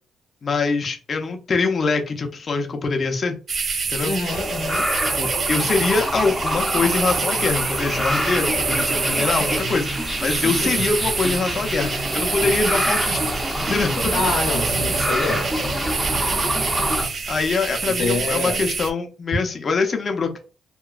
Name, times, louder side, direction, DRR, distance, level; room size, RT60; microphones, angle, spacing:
voice 1, 0.4-3.4 3.9-4.1 5.1-13.2 13.7-14.1 17.3-20.4, left 4 dB, 40° left, 0.6 m, -23 dB
sound 1, 3.5-18.9, right 5 dB, 45° right, 0.4 m, -27 dB
voice 2, 4.0-4.9 10.6-10.8 14.1-15.5 17.9-18.6, left 3 dB, 80° left, 0.7 m, -26 dB
sound 2, 4.3-17.1, equal, ahead, 0.7 m, -26 dB
2.9 x 2.2 x 2.4 m
cardioid pair, 90°, 0 cm